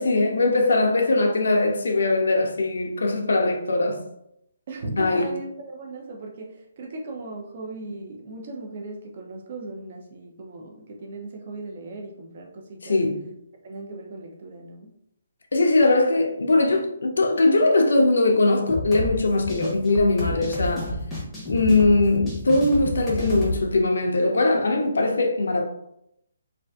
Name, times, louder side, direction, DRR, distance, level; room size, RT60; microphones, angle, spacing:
voice 1, 0.0-4.1 5.0-5.2 12.8-13.2 15.5-21.0 21.5-25.6, left 2 dB, 80° left, 0.4 m, -21 dB
voice 2, 4.7-13.0 13.6-15.0, right 2 dB, 45° right, 0.4 m, -37 dB
sound 1, 18.7-23.6, left 1 dB, 5° left, 0.7 m, -30 dB
2.5 x 2.4 x 2.2 m
hypercardioid pair, 165°, 0 cm